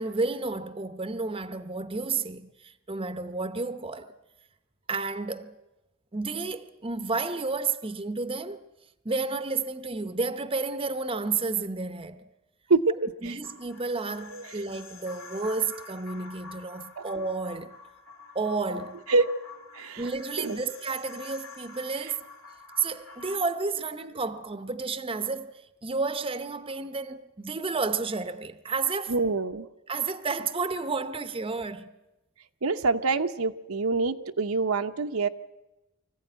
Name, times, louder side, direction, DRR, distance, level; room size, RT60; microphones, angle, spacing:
voice 1, 0.0-4.1 4.9-5.6 6.1-8.6 9.0-12.3 13.2-17.8 18.3-19.1 20.0-22.2 22.8-29.1 29.9-31.9, right 4 dB, 25° right, 0.8 m, -31 dB
sound 1, 13.4-23.4, left 4 dB, 65° left, 2.7 m, -48 dB
voice 2, 19.7-20.0 20.4-20.6 22.0-22.1 29.1-29.7 32.6-35.3, right 3 dB, 80° right, 0.9 m, -26 dB
24.0 x 15.0 x 9.2 m
head